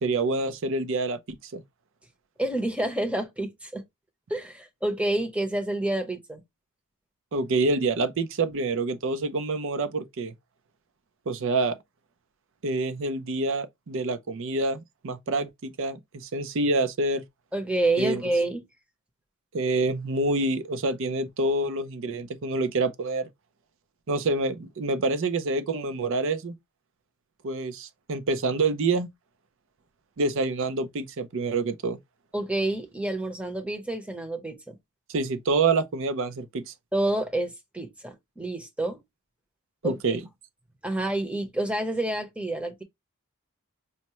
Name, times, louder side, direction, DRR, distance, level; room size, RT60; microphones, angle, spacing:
voice 1, 0.0-1.6 7.3-10.3 11.3-11.8 12.6-17.2 18.0-18.2 19.5-23.3 24.1-26.5 27.4-29.1 30.2-32.0 35.1-36.7 39.8-40.2, right 3 dB, 60° right, 0.5 m, -27 dB
voice 2, 2.4-3.8 4.3-6.4 17.5-18.6 32.3-34.7 36.9-39.0 39.8-40.2 40.8-42.8, right 1 dB, 5° right, 0.7 m, -28 dB
5.5 x 2.1 x 2.9 m
head